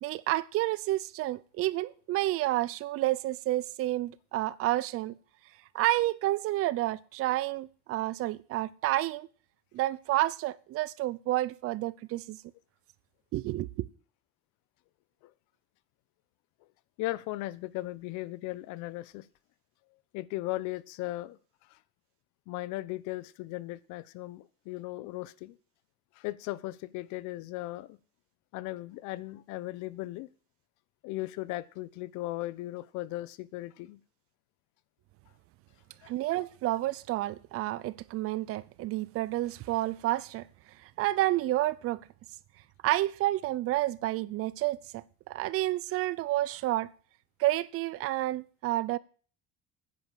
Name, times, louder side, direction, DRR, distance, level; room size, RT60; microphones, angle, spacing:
voice 1, 0.0-5.1 5.7-9.3 9.7-12.4 13.3-13.9 36.1-40.5 41.0-42.0 42.8-46.9 47.4-49.0, right 16 dB, 50° right, 0.6 m, -30 dB
voice 2, 17.0-19.3 20.1-21.4 21.7-21.8 22.5-25.6 26.2-28.0 28.5-30.3 31.0-34.0 36.0-36.1, left 18 dB, 70° left, 0.9 m, -37 dB
9.7 x 9.6 x 7.4 m
cardioid pair, 175°, 30 cm